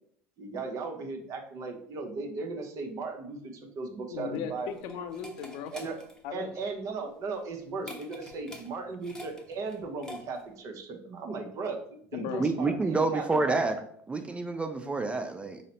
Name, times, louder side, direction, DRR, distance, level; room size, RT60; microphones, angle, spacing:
voice 1, 0.4-4.7 5.7-6.0 6.3-11.8 12.1-13.6, right 4 dB, 50° right, 5 dB, 0.8 m, -37 dB
voice 2, 4.1-5.7 6.2-6.5 12.1-12.7, left 8 dB, 65° left, 8 dB, 0.5 m, -37 dB
sound 1, 4.1-10.6, left 1 dB, 10° left, 0.8 m, -48 dB
voice 3, 12.4-13.8 14.1-15.6, right 3 dB, 15° right, 7 dB, 0.4 m, -28 dB
4.0 x 2.1 x 3.9 m, 0.64 s
hypercardioid pair, 80°, 7 cm